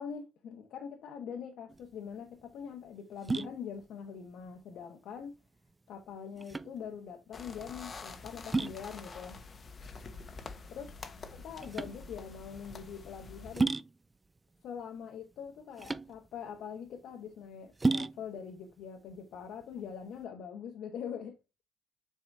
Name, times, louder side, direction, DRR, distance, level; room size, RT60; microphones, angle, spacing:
voice 1, 0.0-5.4 5.9-9.4 10.7-13.8 14.6-21.4, left 7 dB, 80° left, 1.1 m, -43 dB
sound 1, 1.7-20.2, right 3 dB, 20° right, 0.4 m, -37 dB
sound 2, 7.3-13.6, left 4 dB, 40° left, 1.0 m, -47 dB
7.4 x 4.8 x 2.6 m
cardioid pair, 90°, 0 cm